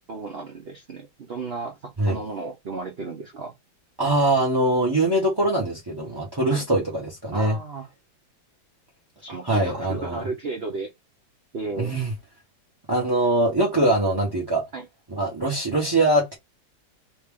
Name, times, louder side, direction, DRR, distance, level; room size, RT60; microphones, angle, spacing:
voice 1, 0.1-3.5 6.5-6.6 7.3-7.9 9.2-10.9 11.5-11.9 14.7-14.9, right 4 dB, 80° right, 0.5 m, -34 dB
voice 2, 4.0-7.6 9.4-10.2 11.8-12.1 12.9-14.6 15.1-16.3, right 1 dB, 20° right, 0.8 m, -22 dB
3.1 x 2.8 x 3.5 m
omnidirectional pair, 2.1 m